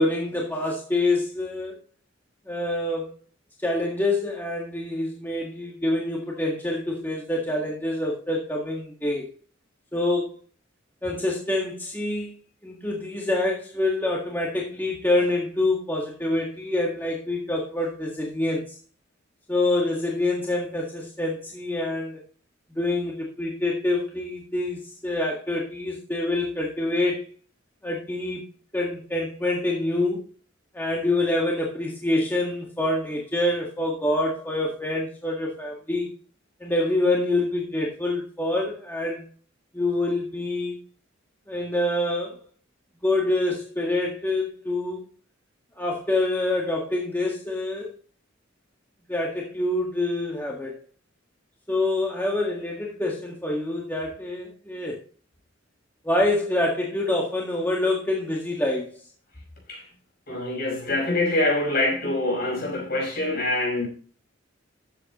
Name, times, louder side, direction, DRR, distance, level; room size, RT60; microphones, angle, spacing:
voice 1, 0.0-1.8 2.5-3.1 3.6-9.3 9.9-10.3 11.0-12.3 12.6-18.8 19.5-22.2 22.8-27.3 27.8-28.4 28.7-30.2 30.7-36.1 36.6-39.2 39.7-40.8 41.5-42.4 43.0-45.0 45.8-47.9 49.1-50.7 51.7-55.0 56.0-58.9, left 2 dB, 10° left, 1.8 m, -26 dB
voice 2, 60.3-63.9, left 2 dB, 50° left, 5.4 m, -25 dB
14.0 x 8.1 x 3.1 m
head